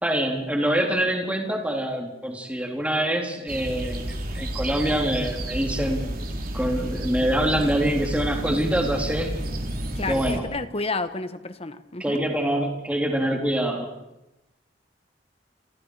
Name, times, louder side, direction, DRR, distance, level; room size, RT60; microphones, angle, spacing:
voice 1, 0.0-6.1 6.5-9.3 10.1-10.4 12.0-13.9, right 1 dB, 10° right, 1 dB, 4.0 m, -25 dB
sound 1, 3.5-10.4, right 1 dB, 55° right, 3.6 m, -31 dB
voice 2, 9.9-12.2, left 3 dB, 35° left, 11 dB, 1.5 m, -31 dB
30.0 x 28.0 x 5.1 m, 0.94 s
head